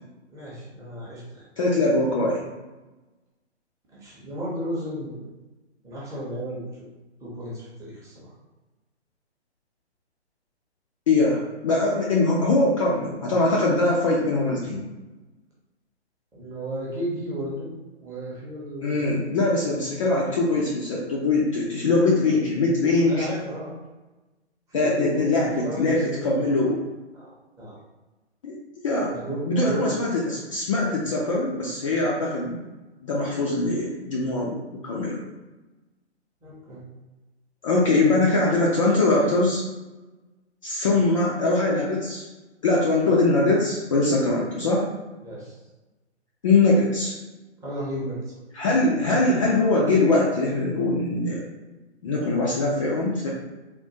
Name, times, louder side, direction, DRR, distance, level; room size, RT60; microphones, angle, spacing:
voice 1, 0.3-1.5 3.9-5.3 5.8-6.6 7.2-8.3 16.3-17.7 18.0-19.3 23.1-23.8 24.7-26.4 27.1-27.3 27.6-27.8 29.1-30.0 36.4-36.8 45.2-45.6 47.6-48.2, equal, 10° right, -7 dB, 0.7 m, -33 dB
voice 2, 1.6-2.5 11.1-14.8 18.8-23.3 24.7-26.8 28.4-28.6 28.8-32.6 33.0-35.2 37.6-39.7 40.6-42.2 42.6-44.9 46.4-47.2 48.5-51.4 52.0-53.3, left 2 dB, 30° left, -4 dB, 0.4 m, -22 dB
3.6 x 2.4 x 2.7 m, 1.1 s
figure-of-eight pair, 125°, 34 cm